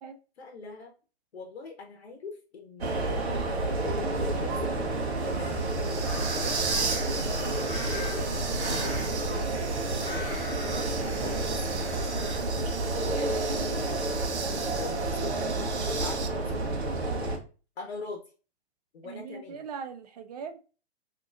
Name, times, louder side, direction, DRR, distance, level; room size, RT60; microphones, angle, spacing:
voice 1, 0.4-0.9 1.3-4.8 5.2-5.9 6.3-10.4 11.2-12.6 13.0-14.3 14.7-15.3 16.0-16.7 17.8-18.2 18.9-19.6, left 4 dB, 70° left, 0.9 m, -43 dB
sound 1, 2.8-17.4, right 2 dB, 70° right, 1.0 m, -30 dB
sound 2, 4.4-16.3, right 5 dB, 85° right, 0.6 m, -37 dB
sound 3, 6.0-12.4, left 2 dB, 15° left, 1.1 m, -42 dB
voice 2, 19.0-20.6, right 6 dB, 40° right, 0.4 m, -40 dB
3.6 x 2.9 x 2.5 m
hypercardioid pair, 125°, 33 cm